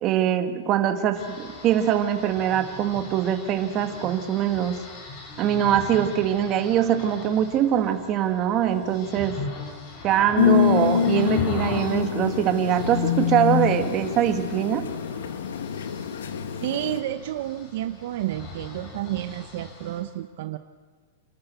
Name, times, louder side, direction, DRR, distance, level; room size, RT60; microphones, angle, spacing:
voice 1, 0.0-4.8 5.4-9.4 10.0-14.9, right 10 dB, 30° right, 7 dB, 1.7 m, -23 dB
sound 1, 1.1-20.0, left 3 dB, 35° left, 4.6 m, -40 dB
sound 2, 10.4-17.0, left 8 dB, 85° left, 1.4 m, -25 dB
voice 2, 16.6-20.6, right 13 dB, 60° right, 10 dB, 0.8 m, -30 dB
28.0 x 12.5 x 8.2 m, 1.5 s
supercardioid pair, 155°, 0 cm